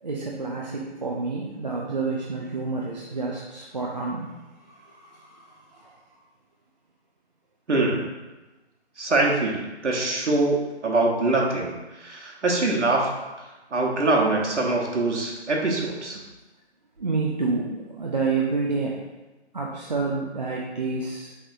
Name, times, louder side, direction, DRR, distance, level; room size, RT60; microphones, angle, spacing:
voice 1, 0.0-6.0 17.0-19.0 19.5-21.3, right 4 dB, 40° right, -3 dB, 0.4 m, -29 dB
voice 2, 7.7-8.0 9.0-11.7 12.0-13.1 13.7-16.2, right 2 dB, 90° right, -2 dB, 1.2 m, -23 dB
5.6 x 3.5 x 2.7 m, 1.1 s
figure-of-eight pair, 160°, 35 cm